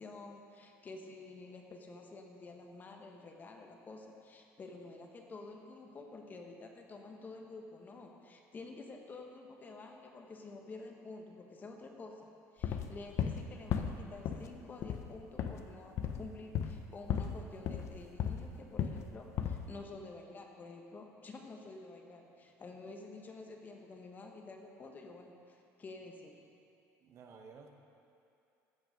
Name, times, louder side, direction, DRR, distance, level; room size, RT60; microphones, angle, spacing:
voice 1, 0.0-26.5, left 3 dB, 30° left, 2 dB, 1.1 m, -50 dB
sound 1, 12.6-13.4 13.7-14.5 14.8-15.1 15.4-15.6 16.0-16.2 16.5-16.8 17.1-17.4 17.6-18.4 18.8-19.1 19.3-19.7, left 8 dB, 55° left, 0.7 m, -35 dB
voice 2, 27.0-27.7, right 5 dB, 50° right, 4 dB, 1.0 m, -53 dB
14.5 x 6.1 x 5.2 m, 2.6 s
cardioid pair, 125°, 6 cm